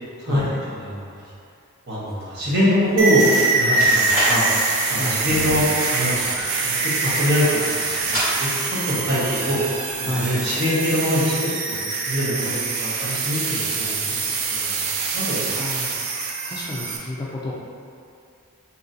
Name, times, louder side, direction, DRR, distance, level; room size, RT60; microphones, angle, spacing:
voice 1, 0.7-1.2 1.9-4.5 4.9-5.6 5.9-6.3 6.6-8.5 8.9-9.6 10.0-14.3 14.6-14.8 15.1-15.5, equal, 50° right, -9 dB, 1.0 m, -23 dB
sound 1, 2.1-4.6 5.4-6.8 7.1-8.3, equal, 10° right, 1.2 m, -30 dB
sound 2, 3.0-17.0, right 3 dB, 65° right, 0.4 m, -24 dB
voice 2, 5.0-5.5 10.0-10.5 15.6-16.0 16.5-17.5, left 2 dB, 20° left, -6 dB, 0.3 m, -30 dB
3.8 x 2.8 x 2.7 m, 2.4 s
head